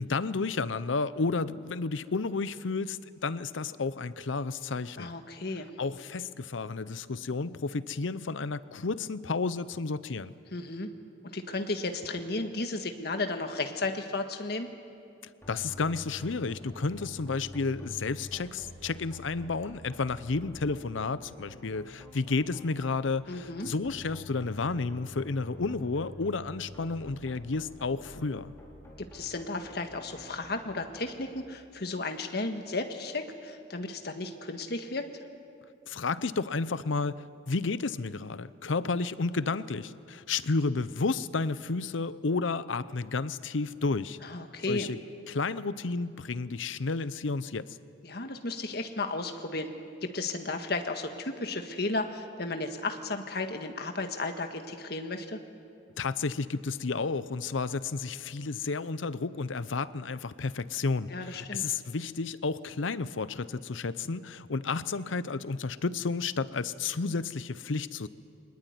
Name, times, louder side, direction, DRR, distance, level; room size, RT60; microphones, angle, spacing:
voice 1, 0.0-5.1 5.8-10.3 15.5-28.5 35.9-44.2 44.7-45.0 45.3-47.8 56.0-68.1, left 4 dB, 80° left, 16 dB, 0.7 m, -31 dB
voice 2, 5.0-5.7 10.5-10.9 11.2-14.7 23.3-23.7 29.0-35.1 44.2-44.9 48.0-49.7 50.0-55.4 61.1-61.6, left 2 dB, 55° left, 6 dB, 1.6 m, -34 dB
sound 1, 15.4-31.0, left 1 dB, 15° left, 4.4 m, -48 dB
23.0 x 20.0 x 9.4 m, 2.5 s
head